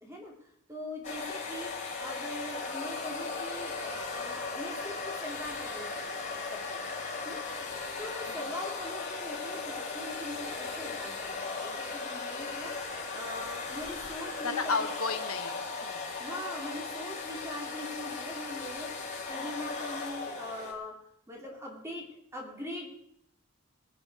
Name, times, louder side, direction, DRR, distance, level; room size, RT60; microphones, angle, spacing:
voice 1, 0.0-6.9 7.2-14.8 16.2-20.9 21.3-22.0 22.3-22.9, left 1 dB, 15° right, -1 dB, 2.7 m, -42 dB
sound 1, 1.0-20.7, left 4 dB, 35° left, 4.3 m, -37 dB
voice 2, 8.0-8.4 14.4-16.1, left 4 dB, 85° left, 7 dB, 1.3 m, -34 dB
22.5 x 8.1 x 4.7 m, 0.68 s
head